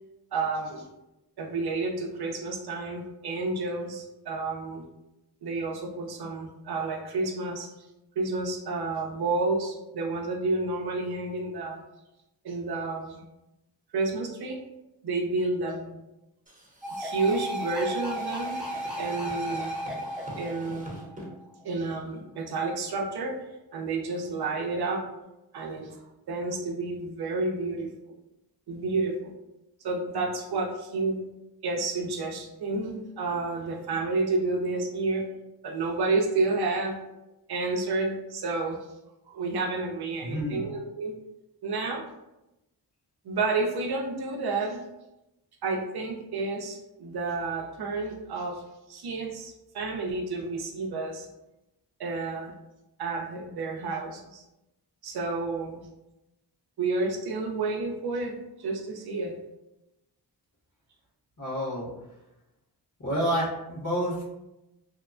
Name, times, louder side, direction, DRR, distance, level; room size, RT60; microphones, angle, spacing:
voice 1, 0.3-0.8 1.4-4.9 5.4-7.7 8.2-11.8 12.4-13.2 13.9-14.6 15.0-16.0 16.9-18.6 19.0-19.8 20.4-21.0 21.6-23.4 23.7-25.1 25.5-26.0 26.3-27.9 28.7-29.3 29.8-31.2 31.6-35.3 35.6-37.0 37.5-38.8 39.3-41.1 41.6-42.0 43.2-44.8 45.6-48.6 48.9-51.3 52.0-52.5 53.0-54.4 55.0-55.8 56.8-59.3, right 3 dB, 65° right, 1 dB, 0.5 m, -30 dB
sound 1, 16.5-21.3, right 1 dB, 20° right, 0.8 m, -45 dB
sound 2, 16.8-21.7, right 1 dB, ahead, 0.3 m, -35 dB
voice 2, 40.2-40.7 61.4-61.9 63.0-64.2, equal, 45° left, -5 dB, 1.2 m, -29 dB
2.8 x 2.2 x 2.4 m, 0.94 s
cardioid pair, 55°, 42 cm